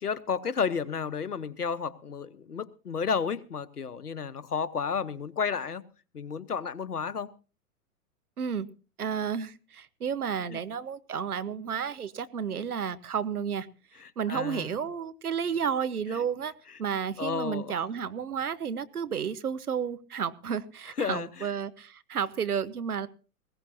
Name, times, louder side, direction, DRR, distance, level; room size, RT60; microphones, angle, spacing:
voice 1, 0.0-5.8 6.1-7.3 10.5-10.6 14.0-14.7 17.2-17.8 21.0-21.3, left 6 dB, 80° left, 1.1 m, -32 dB
voice 2, 9.0-13.7 14.2-16.5 16.8-23.1, right 7 dB, 75° right, 1.2 m, -32 dB
20.5 x 17.0 x 2.7 m
figure-of-eight pair, 105°, 45 cm